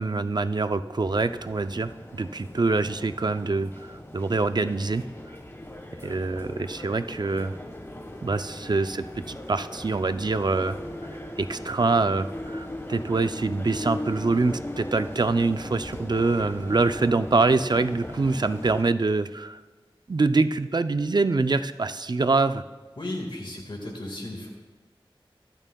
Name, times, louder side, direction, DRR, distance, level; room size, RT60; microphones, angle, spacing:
voice 1, 0.0-5.0 6.0-7.5 8.2-10.8 11.4-19.6 20.1-22.6, right 3 dB, 50° right, 11 dB, 0.5 m, -25 dB
sound 1, 1.0-18.8, left 1 dB, 25° left, 1.3 m, -39 dB
voice 2, 23.0-24.5, left 1 dB, 60° left, 0 dB, 1.8 m, -35 dB
24.0 x 9.0 x 2.3 m, 1.3 s
wide cardioid pair, 55°, 9 cm